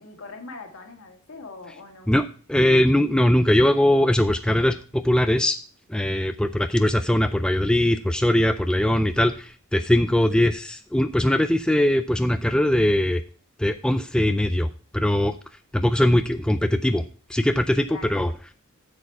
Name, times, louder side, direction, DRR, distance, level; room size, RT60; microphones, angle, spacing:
voice 1, 0.0-2.1 17.9-18.2, left 3 dB, 65° left, 3 dB, 1.9 m, -41 dB
voice 2, 2.1-5.6 5.9-13.2 13.6-15.3 15.7-17.0 17.3-18.3, left 1 dB, 5° left, 8 dB, 0.3 m, -21 dB
8.3 x 7.1 x 4.5 m, 0.40 s
head